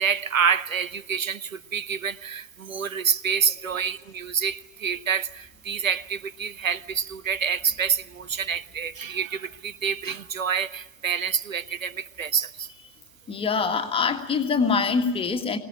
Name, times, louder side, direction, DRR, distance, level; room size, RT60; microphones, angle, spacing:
voice 1, 0.0-12.7, right 7 dB, 75° right, 18 dB, 0.9 m, -27 dB
voice 2, 13.3-15.6, left 5 dB, 15° left, 7 dB, 1.7 m, -24 dB
24.0 x 18.0 x 8.9 m, 1.1 s
figure-of-eight pair, 100°, 40 cm